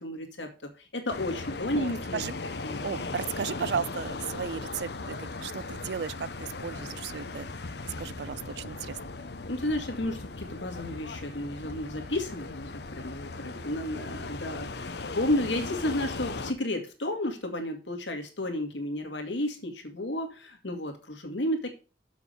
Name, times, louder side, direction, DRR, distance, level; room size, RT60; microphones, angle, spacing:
voice 1, 0.0-2.2 2.6-2.9 4.8-4.9 9.5-21.7, left 1 dB, 80° left, 2.1 m, -32 dB
sound 1, 1.1-16.5, left 3 dB, 60° left, 0.9 m, -38 dB
voice 2, 1.8-2.3 2.8-7.5 7.8-9.0, right 7 dB, 65° right, 0.4 m, -35 dB
7.3 x 6.0 x 6.8 m
head